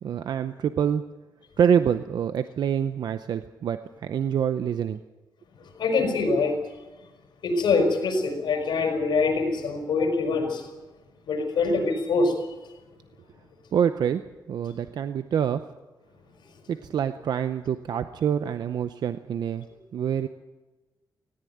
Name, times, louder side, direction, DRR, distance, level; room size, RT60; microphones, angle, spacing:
voice 1, 0.0-1.0 1.6-5.0 13.7-14.2 14.5-15.6 16.7-19.7 19.9-20.3, right 8 dB, 65° right, 11 dB, 0.7 m, -26 dB
voice 2, 5.7-6.6 7.4-10.6 11.3-12.3, left 3 dB, 80° left, 4 dB, 5.3 m, -24 dB
19.0 x 17.5 x 9.4 m, 1.2 s
wide cardioid pair, 175°, 8 cm